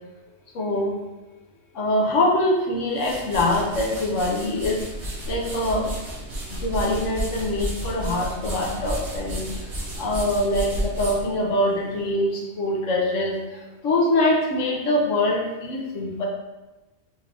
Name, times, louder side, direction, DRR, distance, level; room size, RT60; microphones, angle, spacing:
voice 1, 0.5-1.0 1.7-4.8 5.3-5.9 6.5-9.4 10.0-13.4 13.8-16.3, left 1 dB, 80° left, -1 dB, 1.2 m, -23 dB
sound 1, 2.7-12.1, equal, 60° right, 1.3 m, -32 dB
5.4 x 2.5 x 3.3 m, 1.1 s
omnidirectional pair, 1.3 m